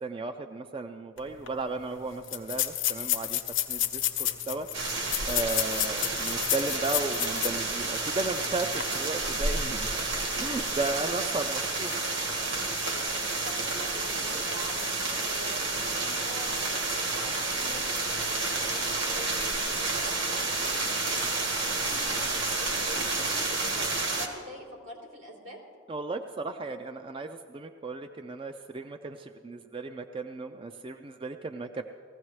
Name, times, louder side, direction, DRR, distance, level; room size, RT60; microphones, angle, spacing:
voice 1, 0.0-3.4 3.7-4.7 5.3-9.9 10.4-12.0 25.9-31.8, right 3 dB, 25° right, 6 dB, 0.4 m, -35 dB
sound 1, 1.2-1.3 1.5-1.6 2.2-7.7 8.1-8.2 8.7-8.8, left 12 dB, 70° left, 0.9 m, -30 dB
sound 2, 4.7-24.3, right 3 dB, 65° right, 1.8 m, -30 dB
voice 2, 13.4-20.9 21.2-25.6, equal, 85° right, -2 dB, 3.3 m, -46 dB
20.0 x 15.5 x 3.2 m, 2.1 s
head